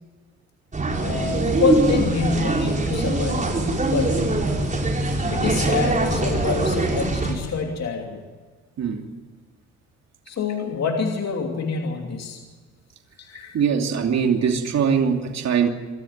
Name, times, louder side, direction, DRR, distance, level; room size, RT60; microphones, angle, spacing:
sound 1, 0.7-7.3, right 2 dB, 25° right, 5.5 m, -22 dB
voice 1, 0.9-3.4 3.9-4.2 5.3-8.2 10.3-12.4 13.2-13.6, left 5 dB, 60° left, 2 dB, 2.9 m, -26 dB
voice 2, 13.5-15.7, right 7 dB, 60° right, 3 dB, 2.8 m, -21 dB
26.5 x 13.5 x 7.4 m, 1.4 s
cardioid pair, 90°, 30 cm